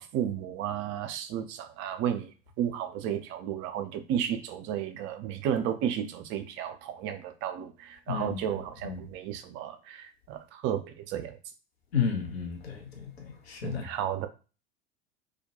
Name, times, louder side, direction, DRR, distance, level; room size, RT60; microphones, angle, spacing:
voice 1, 0.0-2.3 2.6-11.4 13.6-14.3, right 9 dB, 35° right, 0.4 m, -33 dB
voice 2, 8.1-8.4 8.8-9.0 11.9-13.9, left 7 dB, 70° left, 0.8 m, -32 dB
2.3 x 2.1 x 2.8 m
figure-of-eight pair, 80°, 32 cm